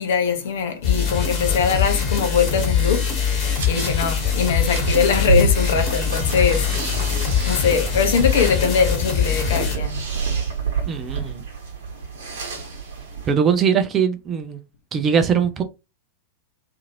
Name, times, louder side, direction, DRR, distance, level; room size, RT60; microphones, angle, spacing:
voice 1, 0.0-7.0 7.5-10.0, left 6 dB, 55° left, 0.8 m, -22 dB
sound 1, 0.8-9.8, left 7 dB, 35° left, 1.2 m, -22 dB
sound 2, 3.5-13.3, right 5 dB, 55° right, 1.2 m, -28 dB
voice 2, 10.9-11.4 13.3-14.6 14.9-15.6, right 7 dB, 25° right, 0.5 m, -21 dB
2.7 x 2.6 x 2.6 m
figure-of-eight pair, 90°, 0 cm